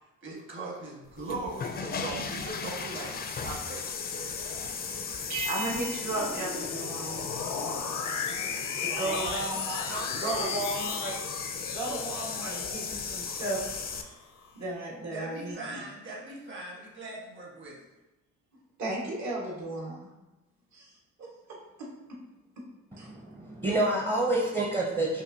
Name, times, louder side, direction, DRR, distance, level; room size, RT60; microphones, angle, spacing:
voice 1, 0.2-3.9 8.9-9.6 9.9-10.5 15.1-17.8, right 3 dB, 40° right, -4 dB, 1.4 m, -39 dB
sound 1, 1.1-14.0, left 5 dB, 30° left, 0.4 m, -36 dB
sound 2, 3.7-14.5, left 6 dB, 85° left, 0.6 m, -38 dB
sound 3, 5.3-7.5, right 4 dB, 90° right, 0.7 m, -40 dB
voice 2, 5.4-7.2 8.8-9.8 10.2-11.1 11.7-13.6 14.5-15.8 18.8-20.1 20.7-20.9 21.2-22.2 22.6-22.7 23.0-23.1, right 2 dB, 65° right, -3 dB, 1.5 m, -35 dB
voice 3, 22.9-25.2, right 2 dB, 20° right, -2 dB, 0.6 m, -28 dB
5.2 x 2.5 x 2.7 m, 1.0 s
cardioid pair, 90°, 30 cm